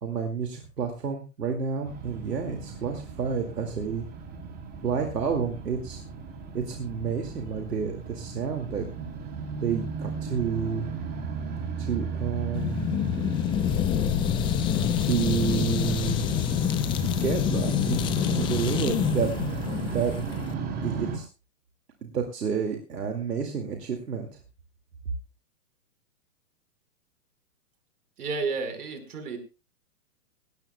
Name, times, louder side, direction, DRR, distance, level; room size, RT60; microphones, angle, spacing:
voice 1, 0.0-4.0 4.8-6.0 6.5-8.9 9.6-10.9 11.8-12.9 15.0-16.3 16.7-18.0 18.3-19.3 19.9-20.1 20.8-21.3 22.0-24.3, right 6 dB, 85° right, 3 dB, 2.4 m, -30 dB
sound 1, 1.8-21.2, right 4 dB, 20° right, 3.3 m, -35 dB
sound 2, 12.5-20.5, left 9 dB, 10° left, 0.6 m, -27 dB
voice 2, 28.2-29.4, right 4 dB, 70° right, 7 dB, 4.6 m, -31 dB
19.0 x 17.0 x 2.3 m, 0.32 s
hypercardioid pair, 135°, 46 cm